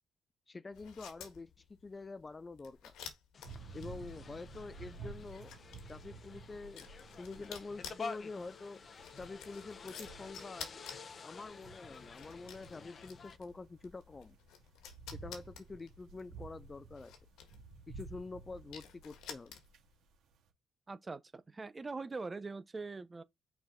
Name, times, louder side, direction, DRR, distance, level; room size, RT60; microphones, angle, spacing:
voice 1, 0.5-2.9 3.7-5.5 5.9-8.8 9.2-10.8 11.2-14.4 15.1-17.1 17.9-19.5, left 3 dB, 25° left, 0.3 m, -47 dB
sound 1, 0.7-19.9, left 7 dB, 90° left, 1.6 m, -53 dB
sound 2, 3.3-13.4, left 5 dB, 45° left, 0.9 m, -50 dB
sound 3, 3.4-20.5, right 4 dB, 85° right, 2.5 m, -53 dB
voice 2, 20.9-23.2, right 3 dB, 25° right, 0.9 m, -42 dB
6.2 x 4.8 x 3.9 m
cardioid pair, 90°, 0 cm